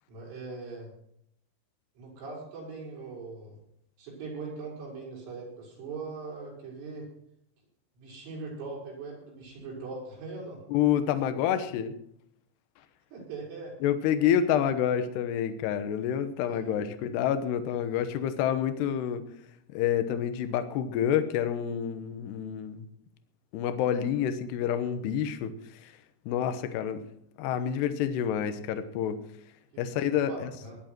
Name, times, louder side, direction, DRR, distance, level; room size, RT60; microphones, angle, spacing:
voice 1, 0.1-0.9 2.0-3.6 4.0-7.1 8.0-10.6 13.1-13.7 16.4-17.2 29.7-29.9 30.2-30.8, right 3 dB, 70° right, -4 dB, 8.0 m, -41 dB
voice 2, 10.7-12.0 13.8-19.3 19.7-22.9 23.5-25.6 25.8-25.9 26.3-27.0 27.4-29.2 29.8-30.5, left 9 dB, 70° left, 9 dB, 2.7 m, -28 dB
19.0 x 11.5 x 4.6 m, 0.71 s
omnidirectional pair, 5.9 m